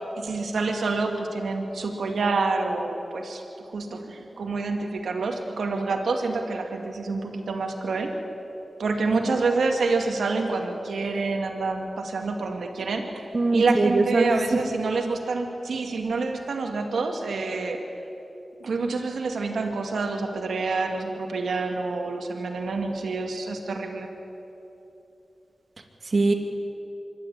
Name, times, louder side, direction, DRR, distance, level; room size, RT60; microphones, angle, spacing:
voice 1, 0.2-3.4 3.7-8.2 8.8-17.8 18.6-24.1, right 3 dB, 90° right, 4 dB, 2.2 m, -27 dB
voice 2, 13.3-14.6 26.0-26.3, right 3 dB, 55° right, 4 dB, 2.5 m, -22 dB
25.0 x 12.5 x 8.8 m, 2.9 s
cardioid pair, 50°, 0 cm